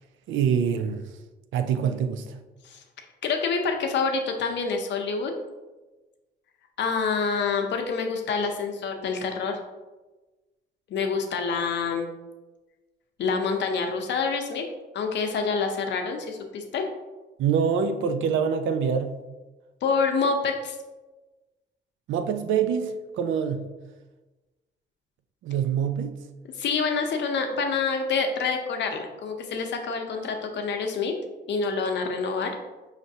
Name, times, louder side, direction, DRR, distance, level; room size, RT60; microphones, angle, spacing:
voice 1, 0.3-1.0 1.5-2.4 17.4-19.2 22.1-23.6 25.4-26.2, right 7 dB, 75° right, 0.4 m, -25 dB
voice 2, 3.2-5.3 6.8-9.6 10.9-12.1 13.2-14.6 14.9-16.9 19.8-20.8 26.6-31.1 31.5-32.5, left 5 dB, 65° left, 0.7 m, -27 dB
5.0 x 3.2 x 2.7 m
cardioid pair, 90°, 20 cm